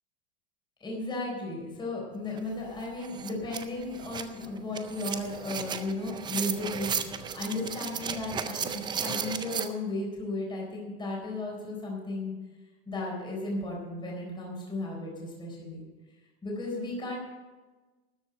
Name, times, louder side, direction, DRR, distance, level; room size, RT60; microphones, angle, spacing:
voice 1, 0.8-12.3 12.9-15.9 16.4-17.2, left 2 dB, 15° left, -3 dB, 4.0 m, -35 dB
sound 1, 2.4-2.5 2.8-9.7, right 7 dB, 15° right, 0.4 m, -35 dB
13.0 x 7.2 x 8.8 m, 1.3 s
supercardioid pair, 160°, 36 cm